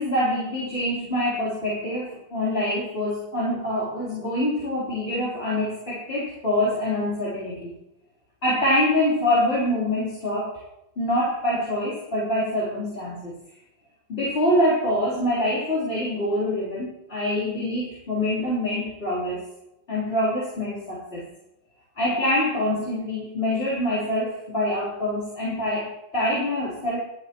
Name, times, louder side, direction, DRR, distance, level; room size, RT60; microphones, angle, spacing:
voice 1, 0.0-7.7 8.4-10.6 11.0-13.3 14.1-19.4 19.9-21.2 22.0-27.0, left 1 dB, 30° left, -7 dB, 3.9 m, -25 dB
24.0 x 8.5 x 3.0 m, 0.92 s
omnidirectional pair, 2.1 m